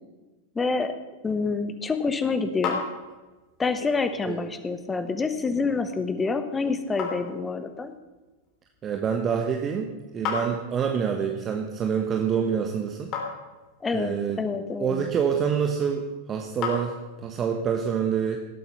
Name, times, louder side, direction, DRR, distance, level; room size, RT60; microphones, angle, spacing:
voice 1, 0.5-0.9 1.2-2.8 3.6-7.9 13.8-15.1, left 4 dB, 15° left, 10 dB, 1.2 m, -27 dB
sound 1, 1.7-17.5, left 5 dB, 35° left, 3.3 m, -39 dB
voice 2, 8.8-13.1 13.9-14.4 14.8-18.4, right 7 dB, 25° right, 3 dB, 1.2 m, -26 dB
18.0 x 8.5 x 5.6 m, 1.2 s
figure-of-eight pair, 90°, 0 cm